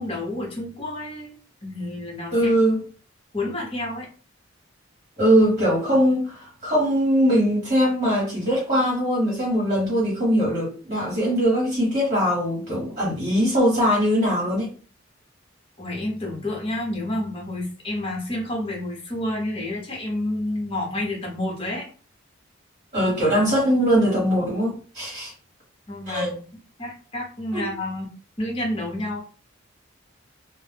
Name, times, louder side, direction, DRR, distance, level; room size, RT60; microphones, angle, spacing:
voice 1, 0.0-1.3 1.6-2.5 3.3-4.1 15.8-21.9 25.9-26.4 26.8-28.0 28.4-29.2, left 1 dB, 30° left, 0.9 m, -29 dB
voice 2, 2.3-2.8 5.2-14.7 22.9-25.3 26.1-26.3 27.5-27.7, equal, 40° right, 1.2 m, -21 dB
2.3 x 2.1 x 3.3 m
head